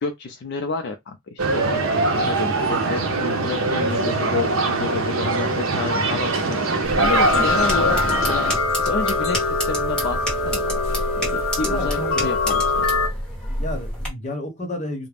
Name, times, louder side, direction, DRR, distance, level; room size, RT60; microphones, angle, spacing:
voice 1, 0.0-6.6 7.0-8.5 8.8-9.4 9.7-12.9, left 4 dB, 55° left, 0.4 m, -30 dB
sound 1, 1.4-8.6, right 3 dB, 75° right, 0.6 m, -22 dB
sound 2, 6.8-14.1, equal, 5° left, 1.1 m, -29 dB
sound 3, 7.0-13.1, left 4 dB, 85° left, 0.8 m, -23 dB
voice 2, 11.6-12.3 13.4-15.1, equal, 35° left, 0.8 m, -31 dB
2.4 x 2.0 x 3.3 m
head